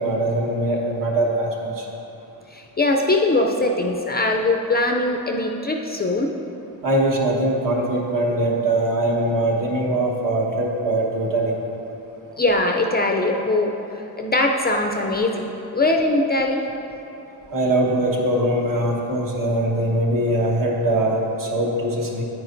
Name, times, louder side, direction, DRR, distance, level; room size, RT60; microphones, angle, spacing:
voice 1, 0.0-1.8 6.8-11.5 17.5-22.2, right 1 dB, 55° right, -2 dB, 1.3 m, -22 dB
voice 2, 2.5-6.3 12.4-15.5 15.7-16.7, left 2 dB, 25° left, 2 dB, 0.4 m, -21 dB
9.4 x 9.1 x 2.6 m, 2.9 s
wide cardioid pair, 135°, 38 cm